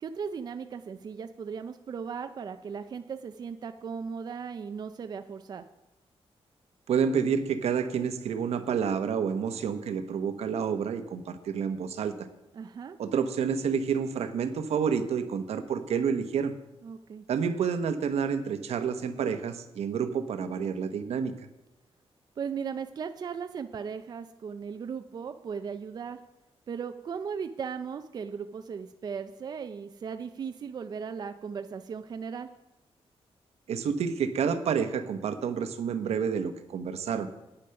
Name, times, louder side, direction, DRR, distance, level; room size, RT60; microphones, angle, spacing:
voice 1, 0.0-5.6 12.5-13.0 16.8-17.3 22.4-26.2 26.7-32.5, right 6 dB, 40° right, 8 dB, 0.5 m, -37 dB
voice 2, 6.9-12.1 13.0-16.5 17.3-21.3 33.7-37.5, right 6 dB, 85° right, 8 dB, 1.0 m, -29 dB
9.9 x 9.0 x 5.8 m, 0.97 s
wide cardioid pair, 175°, 11 cm